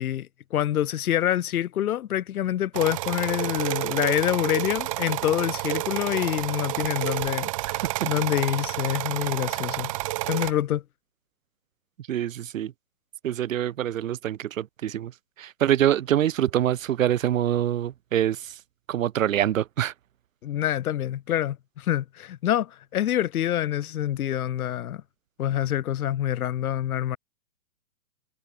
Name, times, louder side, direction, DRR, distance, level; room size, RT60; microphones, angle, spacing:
voice 1, 0.0-9.9 10.3-10.8 20.4-25.0 25.4-27.2, left 11 dB, 90° left, 0.7 m, -26 dB
sound 1, 2.7-10.5, right 19 dB, 25° right, 0.7 m, -30 dB
voice 2, 12.1-12.7 13.2-15.1 15.4-18.4 18.9-19.9, right 11 dB, 65° right, 1.0 m, -25 dB
hypercardioid pair, 155°, 42 cm